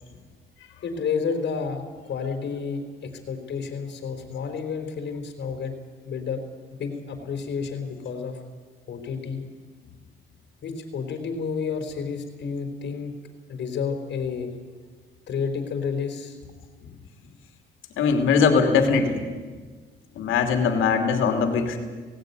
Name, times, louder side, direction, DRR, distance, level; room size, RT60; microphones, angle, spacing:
voice 1, 0.8-5.7 6.0-6.4 6.7-8.4 8.9-9.4 10.6-13.2 13.5-14.5 15.3-16.4, left 5 dB, 60° left, 5 dB, 4.1 m, -30 dB
voice 2, 18.0-19.2 20.2-21.8, left 5 dB, 85° left, 5 dB, 2.8 m, -21 dB
18.0 x 17.5 x 9.5 m, 1.5 s
cardioid pair, 90°, 20 cm